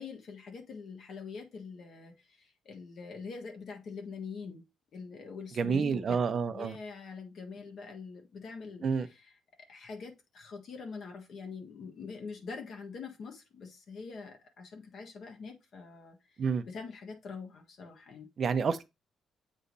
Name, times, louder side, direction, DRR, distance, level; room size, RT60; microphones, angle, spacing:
voice 1, 0.0-4.6 4.9-6.2 6.5-9.3 9.7-16.2 16.6-18.3, left 5 dB, 50° left, 1.4 m, -44 dB
voice 2, 5.6-6.8 8.8-9.1 16.4-16.6 18.4-18.9, right 5 dB, 40° right, 0.6 m, -29 dB
8.0 x 3.2 x 4.0 m
cardioid pair, 165°, 0 cm